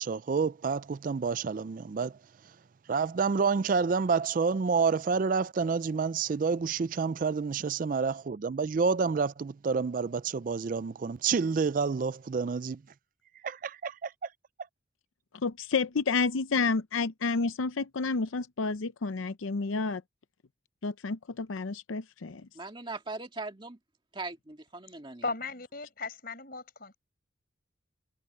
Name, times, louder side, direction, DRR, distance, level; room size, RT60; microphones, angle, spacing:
voice 1, 0.0-2.2 2.4-2.6 2.9-12.8 13.4-14.3, right 5 dB, 45° right, 0.3 m, -29 dB
voice 2, 15.4-20.0 20.8-22.5, left 4 dB, 85° left, 0.6 m, -30 dB
voice 3, 22.5-23.8 24.1-25.3, right 3 dB, 25° right, 2.1 m, -40 dB
voice 4, 25.2-27.0, left 3 dB, 50° left, 5.7 m, -37 dB
head